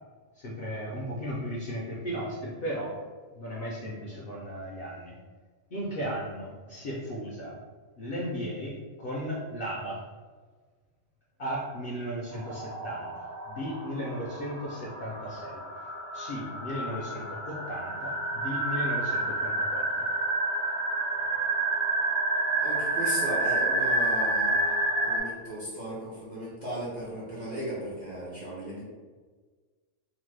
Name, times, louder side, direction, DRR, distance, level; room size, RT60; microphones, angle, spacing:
voice 1, 0.4-3.0 3.4-5.1 5.7-7.6 8.0-10.0 11.4-15.6 16.1-20.1, equal, 65° left, -5 dB, 0.6 m, -36 dB
sound 1, 12.3-25.2, right 2 dB, 85° right, 1.1 m, -29 dB
voice 2, 22.6-28.8, right 1 dB, 50° right, -7 dB, 0.6 m, -36 dB
2.9 x 2.0 x 3.1 m, 1.4 s
omnidirectional pair, 1.4 m